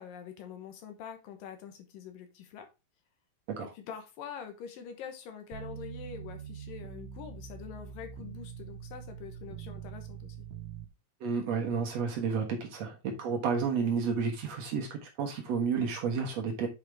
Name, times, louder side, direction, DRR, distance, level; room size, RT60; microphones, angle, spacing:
voice 1, 0.0-2.7 3.6-10.5, left 8 dB, 70° left, 2.6 m, -45 dB
sound 1, 5.5-10.9, right 8 dB, 90° right, 1.6 m, -44 dB
voice 2, 11.2-14.9 15.2-16.7, right 5 dB, 60° right, 1.9 m, -31 dB
8.2 x 5.0 x 3.4 m
omnidirectional pair, 4.3 m